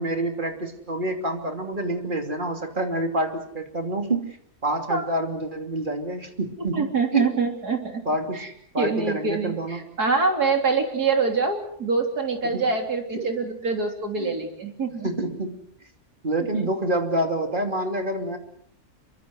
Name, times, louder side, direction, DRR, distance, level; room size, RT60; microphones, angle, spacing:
voice 1, 0.0-4.3 4.6-7.3 8.0-8.4 8.7-9.9 12.4-12.7 13.1-13.3 14.2-14.4 15.0-15.6 16.2-18.4, right 1 dB, 30° right, 5 dB, 3.1 m, -27 dB
voice 2, 6.7-8.0 8.3-8.5 8.8-15.1 16.5-16.7, right 4 dB, 90° right, 4 dB, 3.9 m, -25 dB
26.5 x 24.0 x 6.3 m, 0.65 s
omnidirectional pair, 1.6 m